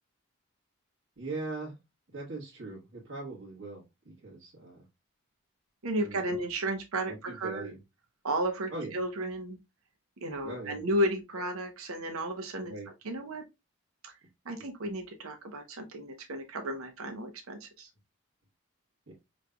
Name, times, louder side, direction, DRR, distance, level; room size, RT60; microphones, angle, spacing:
voice 1, 1.2-1.8 2.1-4.9 6.0-6.4 7.1-7.8 8.7-9.0 10.4-10.8 11.4-11.5 12.6-12.9 19.1-19.2, right 2 dB, 65° right, 1.4 m, -41 dB
voice 2, 5.8-7.7 8.2-9.6 10.2-12.7 13.0-13.4 14.0-14.1 14.4-17.9, right 1 dB, 80° right, 0.8 m, -33 dB
5.0 x 3.2 x 2.2 m
head